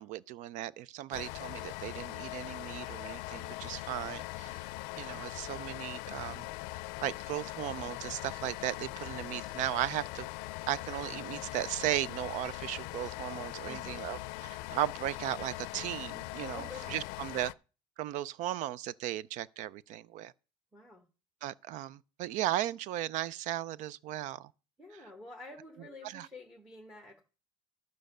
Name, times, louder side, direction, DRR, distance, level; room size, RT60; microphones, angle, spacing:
voice 1, 0.0-4.7 5.0-6.5 7.0-10.3 10.7-17.5 18.0-20.3 21.4-24.5 26.0-26.3, right 13 dB, 50° right, 0.4 m, -36 dB
sound 1, 1.1-17.5, left 19 dB, 80° left, 0.5 m, -41 dB
voice 2, 13.6-14.1 16.5-17.0 20.7-21.0 24.8-27.2, left 2 dB, 5° right, 1.1 m, -49 dB
12.5 x 5.2 x 6.5 m
cardioid pair, 170°, 16 cm